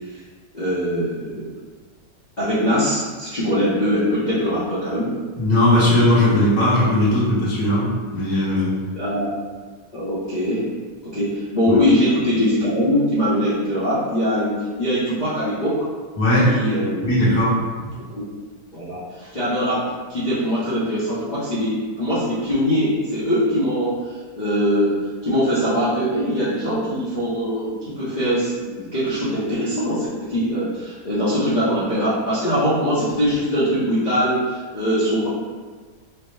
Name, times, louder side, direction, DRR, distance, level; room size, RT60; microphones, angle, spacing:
voice 1, 0.5-1.5 2.4-5.1 6.2-6.5 8.9-9.3 9.9-10.6 11.0-15.9 16.4-17.1 17.9-18.0 18.7-24.9 25.2-35.3, equal, 40° left, -11 dB, 0.6 m, -22 dB
voice 2, 5.3-8.7 16.2-16.5 17.0-17.5, left 1 dB, 75° left, -9 dB, 1.5 m, -18 dB
4.8 x 2.0 x 3.2 m, 1.5 s
omnidirectional pair, 1.7 m